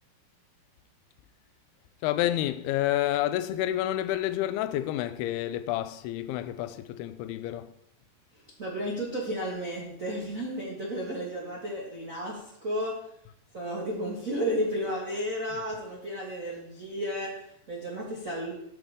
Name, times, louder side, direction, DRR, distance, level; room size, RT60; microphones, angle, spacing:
voice 1, 2.0-7.7, left 13 dB, 85° left, 2.5 m, -29 dB
voice 2, 8.6-13.1 13.5-18.5, equal, 75° right, 0.7 m, -33 dB
13.5 x 6.4 x 3.6 m
omnidirectional pair, 4.5 m